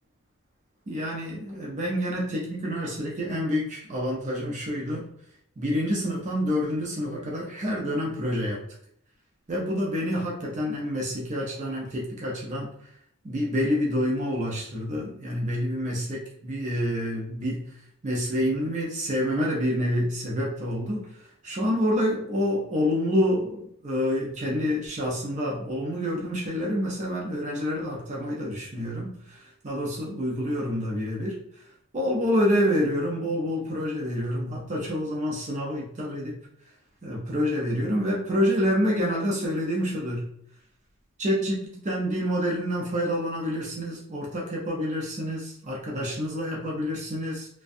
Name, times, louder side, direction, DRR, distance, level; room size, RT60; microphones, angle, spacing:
voice 1, 0.9-5.0 5.6-8.6 9.5-12.7 13.2-17.6 18.0-21.1 21.4-31.4 31.9-36.4 37.0-40.3 41.2-47.5, equal, 35° right, -3 dB, 0.5 m, -27 dB
2.5 x 2.2 x 2.5 m, 0.69 s
head